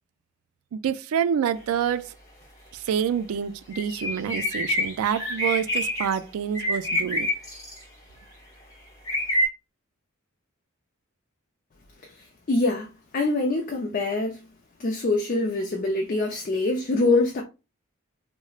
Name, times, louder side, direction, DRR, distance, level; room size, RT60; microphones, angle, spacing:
voice 1, 0.7-2.1 2.7-7.3, right 8 dB, 80° right, 0.3 m, -27 dB
sound 1, 3.7-6.2 6.5-7.8 9.1-9.5, equal, 15° left, 1.0 m, -27 dB
voice 2, 12.5-12.9 13.1-14.4 14.8-17.4, left 2 dB, 40° left, 0.4 m, -24 dB
4.0 x 2.0 x 2.3 m
head